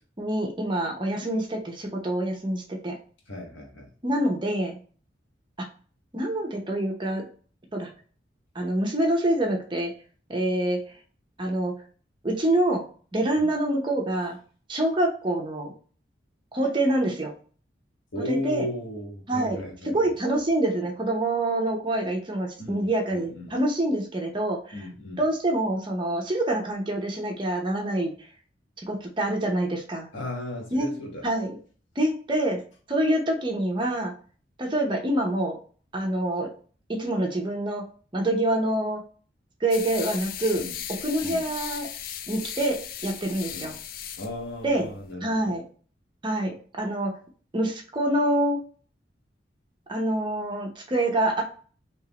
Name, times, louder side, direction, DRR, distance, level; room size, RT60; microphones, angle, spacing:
voice 1, 0.2-3.0 4.0-4.8 5.6-5.7 6.1-7.3 7.7-7.9 8.5-9.9 10.3-10.8 11.4-11.7 12.2-12.8 13.1-14.4 14.7-15.7 16.5-17.3 18.2-18.7 19.3-19.6 19.9-24.9 25.2-28.1 28.8-30.1 30.7-31.0 31.2-31.5 32.0-32.6 32.9-34.1 34.6-35.6 35.9-36.5 36.9-37.9 38.1-39.0 39.6-40.6 40.9-41.9 42.3-43.7 44.6-44.9 45.2-45.6 46.2-47.1 47.5-48.6 49.9-51.4, right 1 dB, 25° right, 1 dB, 0.7 m, -26 dB
voice 2, 3.3-3.9 13.3-13.5 18.1-20.1 22.6-23.6 24.7-25.2 30.1-31.3 40.6-40.7 41.2-41.5 43.5-43.7 44.2-45.6, left 1 dB, 90° left, 0 dB, 1.2 m, -35 dB
sound 1, 39.7-45.1, left 9 dB, 50° left, 0.3 m, -37 dB
3.6 x 2.9 x 2.9 m, 0.41 s
head